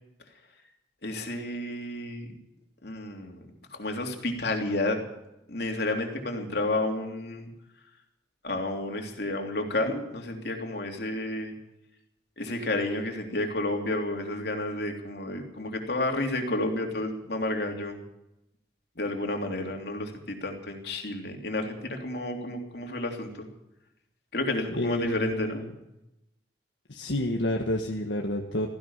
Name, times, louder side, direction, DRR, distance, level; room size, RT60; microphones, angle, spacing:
voice 1, 1.0-2.3 2.8-5.0 5.5-7.5 8.4-11.5 12.4-18.0 19.0-23.5 24.3-25.6, left 2 dB, 60° left, 2 dB, 3.2 m, -31 dB
voice 2, 24.8-25.7 26.9-28.7, left 1 dB, 80° left, 1 dB, 1.6 m, -29 dB
16.5 x 15.5 x 5.7 m, 0.89 s
head